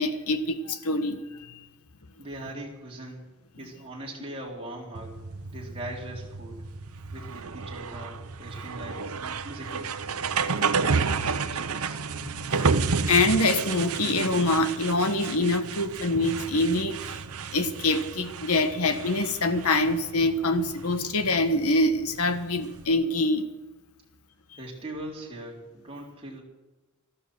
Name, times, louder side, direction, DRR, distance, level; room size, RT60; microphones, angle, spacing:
voice 1, 0.0-1.5 12.2-17.2 17.5-23.5, left 2 dB, 85° left, 9 dB, 1.4 m, -25 dB
voice 2, 2.2-3.2 3.6-5.1 5.5-6.6 7.1-9.9 10.4-12.0 24.5-26.4, right 1 dB, 25° right, -3 dB, 3.9 m, -40 dB
sound 1, 4.9-22.9, right 5 dB, 90° right, 0.9 m, -31 dB
14.5 x 12.5 x 6.4 m, 1.1 s
head